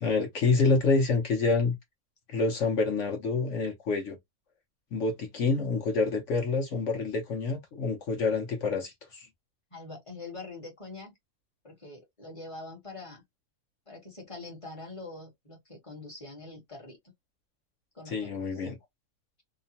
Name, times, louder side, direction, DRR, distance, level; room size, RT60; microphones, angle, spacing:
voice 1, 0.0-1.7 2.3-4.2 4.9-9.3 18.1-18.8, left 3 dB, 60° left, 1.0 m, -27 dB
voice 2, 9.7-11.1 11.6-13.2 13.9-17.0 17.9-18.6, left 3 dB, 25° left, 1.0 m, -44 dB
2.9 x 2.1 x 2.7 m
omnidirectional pair, 1.6 m